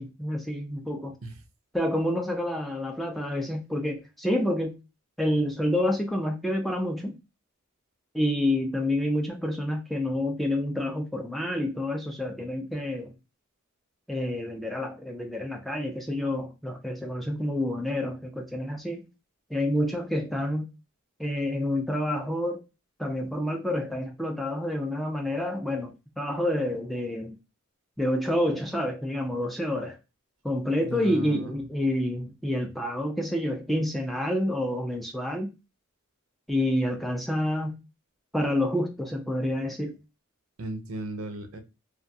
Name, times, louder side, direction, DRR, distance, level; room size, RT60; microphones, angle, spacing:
voice 1, 0.0-1.1 1.7-4.8 5.2-7.1 8.1-13.1 14.1-19.0 19.5-20.6 21.2-22.6 23.0-27.4 28.0-30.0 30.4-35.5 36.5-37.8 38.3-39.9, left 1 dB, ahead, 0.3 m, -28 dB
voice 2, 30.9-31.5 40.6-41.6, right 2 dB, 75° right, 0.6 m, -36 dB
2.3 x 2.2 x 2.6 m
head